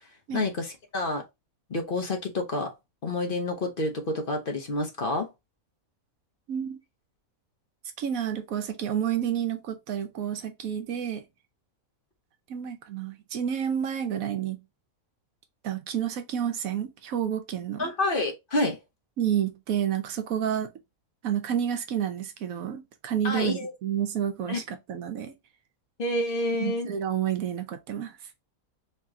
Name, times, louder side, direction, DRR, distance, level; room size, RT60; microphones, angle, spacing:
voice 1, 0.3-1.2 1.7-2.7 3.0-5.3 17.8-18.8 23.2-23.7 24.5-24.6 26.0-26.9, left 2 dB, 45° left, 0.9 m, -28 dB
voice 2, 6.5-6.8 8.0-11.2 12.5-14.6 15.6-17.9 19.2-20.7 21.2-25.3 26.6-28.1, right 9 dB, 75° right, 1.1 m, -30 dB
3.3 x 2.9 x 3.5 m
omnidirectional pair, 1.5 m